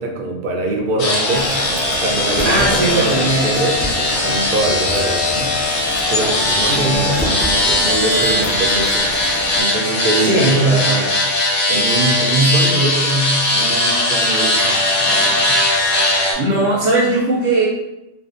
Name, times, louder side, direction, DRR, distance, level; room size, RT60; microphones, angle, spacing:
voice 1, 0.0-1.5 2.0-5.5 6.0-9.1 9.6-11.2 11.7-14.8, right 2 dB, 60° right, 1 dB, 0.5 m, -22 dB
sound 1, 1.0-16.3, left 1 dB, 60° left, 0.8 m, -19 dB
sound 2, 1.3-9.6, equal, 25° left, 0.4 m, -28 dB
voice 2, 2.4-3.5 6.7-7.1 10.2-10.9 15.0-15.5 16.0-17.7, right 2 dB, 75° right, -5 dB, 0.9 m, -19 dB
2.5 x 2.3 x 2.4 m, 0.90 s
omnidirectional pair, 1.3 m